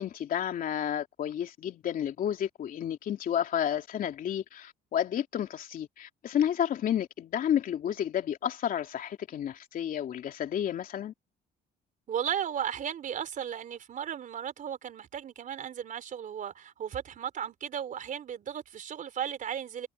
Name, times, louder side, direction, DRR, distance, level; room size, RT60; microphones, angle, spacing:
voice 1, 0.0-11.1, left 9 dB, 55° left, 3.2 m, -31 dB
voice 2, 12.1-19.9, right 9 dB, 50° right, 4.1 m, -35 dB
cardioid pair, 110°, 17 cm